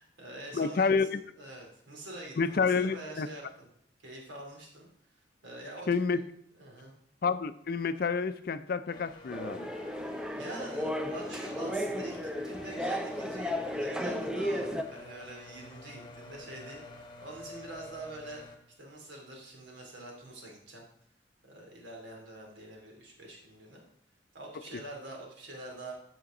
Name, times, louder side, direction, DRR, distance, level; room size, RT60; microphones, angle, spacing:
voice 1, 0.0-1.0 1.4-3.7 4.0-4.9 5.1-6.2 6.6-6.9 10.4-18.4 18.8-20.9 21.4-23.8 24.3-25.9, right 1 dB, 80° right, -1 dB, 2.8 m, -45 dB
voice 2, 0.5-1.2 2.4-3.3 5.9-6.2 7.2-9.7, left 5 dB, 50° left, 13 dB, 0.4 m, -29 dB
sound 1, 8.9-18.6, left 3 dB, 25° left, 1.1 m, -49 dB
sound 2, 9.3-14.8, equal, 5° right, 0.5 m, -34 dB
14.0 x 5.1 x 3.8 m, 0.71 s
head